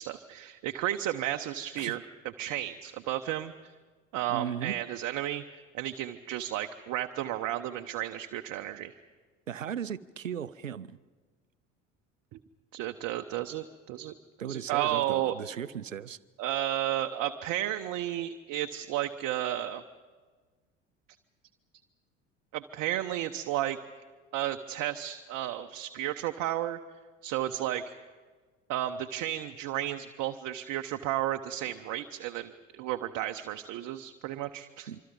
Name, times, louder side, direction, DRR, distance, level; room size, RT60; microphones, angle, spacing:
voice 1, 0.0-2.0 2.4-3.5 4.1-5.4 5.7-8.9 12.7-14.1 14.4-15.4 16.4-19.8 22.5-23.8 24.3-26.8 27.2-27.8 28.7-34.9, right 13 dB, 50° right, 6 dB, 1.0 m, -33 dB
voice 2, 4.3-4.7 9.5-11.0 14.4-16.2 34.9-35.0, right 8 dB, 85° right, 17 dB, 0.7 m, -37 dB
26.0 x 25.0 x 5.3 m, 1.4 s
figure-of-eight pair, 65°, 38 cm